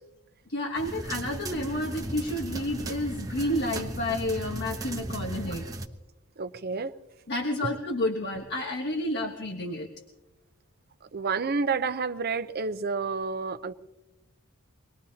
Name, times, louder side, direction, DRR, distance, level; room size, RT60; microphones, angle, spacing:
voice 1, 0.5-5.7 7.3-9.9, left 1 dB, 50° left, 1 dB, 1.4 m, -30 dB
sound 1, 0.7-5.9, right 1 dB, 15° right, 0.9 m, -36 dB
voice 2, 6.4-6.9 11.1-13.7, right 4 dB, 45° right, 11 dB, 0.6 m, -29 dB
24.0 x 20.5 x 2.8 m, 1.0 s
head